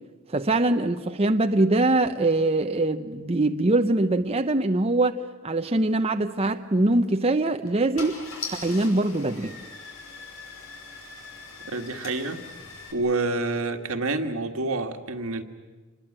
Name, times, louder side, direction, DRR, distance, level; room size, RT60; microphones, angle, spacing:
voice 1, 0.3-8.2 8.5-9.6, right 2 dB, 30° right, 6 dB, 0.8 m, -23 dB
Car / Engine starting, 6.9-7.1 7.7-7.8 8.0-12.9, left 4 dB, 75° left, 6.0 m, -41 dB
voice 2, 11.6-12.4 12.9-15.4, right 3 dB, 80° right, 5 dB, 1.9 m, -28 dB
27.0 x 21.0 x 8.8 m, 1.3 s
head